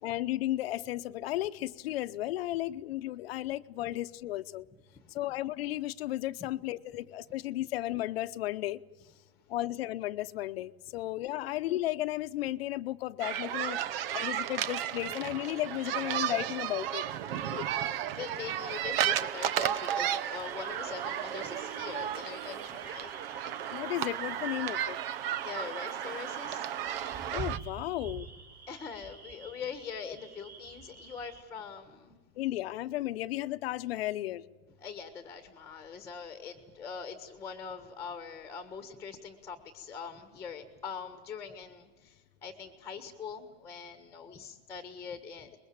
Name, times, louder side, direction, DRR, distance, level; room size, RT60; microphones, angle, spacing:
voice 1, 0.0-4.6 5.1-8.8 9.5-13.8 14.1-17.0 17.5-17.9 23.7-25.0 27.3-28.3 32.4-34.4, left 15 dB, 70° left, 0.9 m, -34 dB
sound 1, 13.2-27.6, right 10 dB, 65° right, 1.1 m, -34 dB
voice 2, 18.1-23.1 25.4-26.6 28.7-32.2 34.8-45.6, left 6 dB, 10° left, 1.4 m, -43 dB
sound 2, 20.4-31.4, right 5 dB, 30° right, 3.9 m, -48 dB
24.5 x 21.5 x 8.7 m
supercardioid pair, 165°, 31 cm